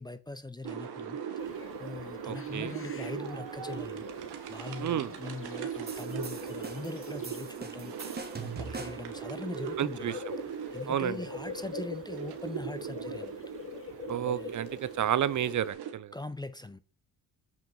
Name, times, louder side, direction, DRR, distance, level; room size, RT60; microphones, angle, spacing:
voice 1, 0.0-1.4 1.8-4.0 4.5-7.9 8.4-10.2 10.7-13.4 14.1-14.6 16.1-16.8, left 2 dB, 10° left, 0.5 m, -41 dB
sound 1, 0.6-15.9, right 8 dB, 75° right, 1.4 m, -40 dB
sound 2, 1.4-15.7, left 5 dB, 35° left, 1.0 m, -45 dB
voice 2, 2.2-2.8 4.8-5.1 9.8-10.1 10.9-11.2 14.1-16.1, right 10 dB, 50° right, 0.6 m, -31 dB
sound 3, 5.9-9.2, right 4 dB, 25° right, 1.6 m, -42 dB
7.5 x 5.8 x 4.6 m
cardioid pair, 85°, 39 cm